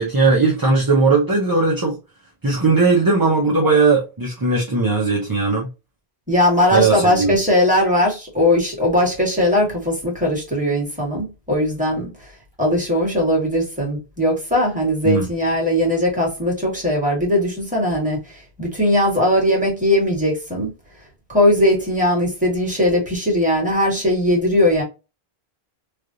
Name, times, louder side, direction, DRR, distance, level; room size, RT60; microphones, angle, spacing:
voice 1, 0.0-2.0 2.4-5.7 6.7-7.4 15.0-15.3, right 3 dB, 25° right, 0.5 m, -18 dB
voice 2, 6.3-12.1 12.6-20.7 21.3-24.8, left 1 dB, 5° right, 1.6 m, -19 dB
3.3 x 2.4 x 2.6 m
omnidirectional pair, 1.1 m